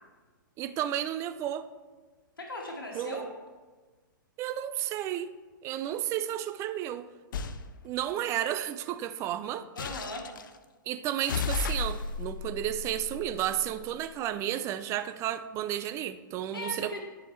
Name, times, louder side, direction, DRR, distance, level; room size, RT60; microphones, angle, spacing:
voice 1, 0.6-1.7 2.9-3.3 4.4-5.3 5.6-7.1 7.8-9.6 10.9-17.0, right 12 dB, 25° right, 11 dB, 0.4 m, -32 dB
voice 2, 2.4-3.3 9.7-10.3 16.5-17.0, left 2 dB, 85° left, 0 dB, 1.4 m, -38 dB
sound 1, 7.3-7.6 9.8-10.5 11.2-13.8, left 5 dB, 70° left, 0.5 m, -34 dB
10.5 x 4.9 x 3.2 m, 1.3 s
hypercardioid pair, 120°, 11 cm